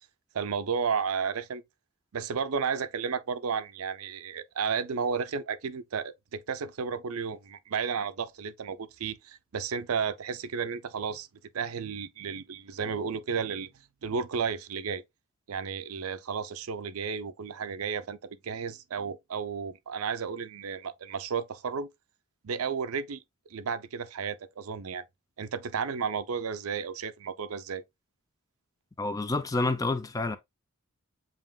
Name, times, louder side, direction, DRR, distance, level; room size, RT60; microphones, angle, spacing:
voice 1, 0.3-1.6 2.1-11.3 11.5-13.7 14.0-15.0 15.5-21.9 22.4-23.2 23.5-25.0 25.4-27.8, right 6 dB, 80° right, 0.5 m, -33 dB
voice 2, 29.0-30.4, left 2 dB, 15° left, 0.4 m, -28 dB
7.4 x 3.0 x 2.2 m
head